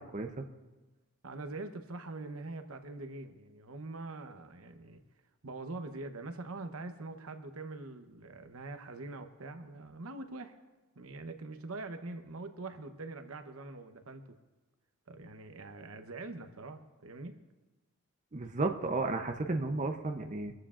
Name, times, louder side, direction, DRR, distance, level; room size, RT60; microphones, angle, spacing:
voice 1, 0.1-0.5 18.3-20.5, right 3 dB, 35° right, 5 dB, 0.7 m, -33 dB
voice 2, 1.2-5.0 5.4-10.6 11.0-14.4 15.1-17.4, right 2 dB, 85° right, 7 dB, 1.0 m, -44 dB
23.5 x 14.0 x 2.5 m, 1.2 s
head